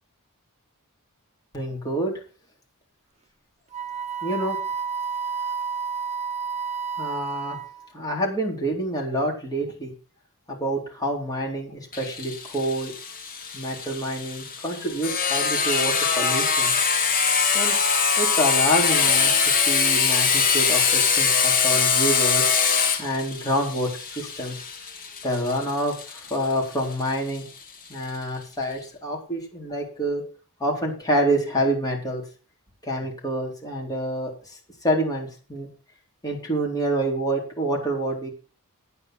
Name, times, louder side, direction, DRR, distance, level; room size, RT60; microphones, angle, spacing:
voice 1, 1.5-2.1 4.2-4.6 7.0-7.6 7.9-9.9 10.5-12.9 13.5-16.7 17.5-17.8 18.2-22.5 23.0-24.7 25.2-27.4 27.9-30.2 30.6-32.2 32.8-35.7 36.2-38.3, right 1 dB, 15° left, -2 dB, 4.2 m, -27 dB
Wind instrument woodwind instrument, 3.7-7.9, right 6 dB, 30° right, 0.9 m, -30 dB
Sawing, 11.9-27.4, left 6 dB, 40° left, 2.0 m, -23 dB
9.8 x 9.6 x 6.2 m, 0.37 s
head